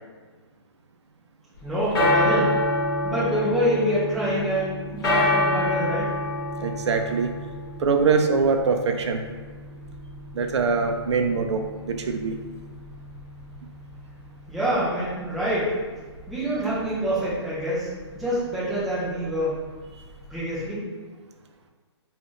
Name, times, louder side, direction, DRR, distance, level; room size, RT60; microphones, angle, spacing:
sound 1, 1.6-20.6, left 2 dB, 50° left, 0.9 m, -29 dB
voice 1, 1.6-2.5 3.0-6.1 14.5-15.7 16.3-19.6 20.3-20.8, equal, ahead, -14 dB, 0.3 m, -26 dB
voice 2, 6.6-7.3 7.8-9.2 10.3-12.3, right 5 dB, 75° right, 4 dB, 0.4 m, -23 dB
3.4 x 2.3 x 2.5 m, 1.4 s
hypercardioid pair, 170°, 15 cm